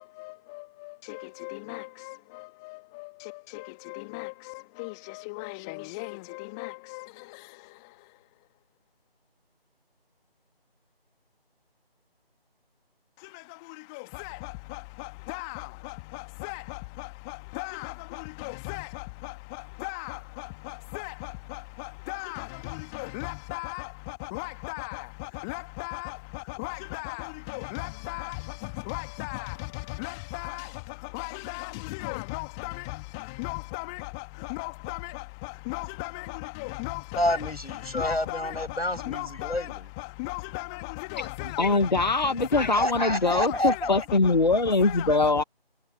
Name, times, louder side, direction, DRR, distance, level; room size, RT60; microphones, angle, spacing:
voice 1, 17.6-17.9 18.4-18.9 19.8-20.2 20.9-21.1 22.1-22.4 22.9-23.8 24.3-25.0 25.5-26.1 26.6-28.3 28.9-29.5 30.0-30.6 31.1-32.7 33.4-33.8 34.6-35.0 35.7-36.1 36.8-37.2 38.0-38.4 39.1-39.5 40.3-40.7 41.1-41.6 42.5-42.8 43.4-43.8 44.8-45.1, left 29 dB, 5° left, 2.3 m, -35 dB
voice 2, 37.2-39.9 42.7-44.1, left 1 dB, 80° left, 7.2 m, -29 dB
voice 3, 41.6-45.4, left 3 dB, 45° left, 1.6 m, -23 dB
figure-of-eight pair, 165°, 31 cm